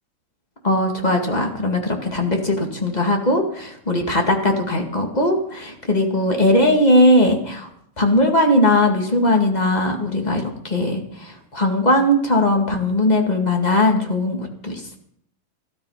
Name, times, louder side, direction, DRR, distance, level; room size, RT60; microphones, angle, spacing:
voice 1, 0.6-7.7 8.0-15.0, left 1 dB, 15° left, 2 dB, 1.7 m, -19 dB
13.5 x 13.0 x 5.7 m, 0.67 s
omnidirectional pair, 3.3 m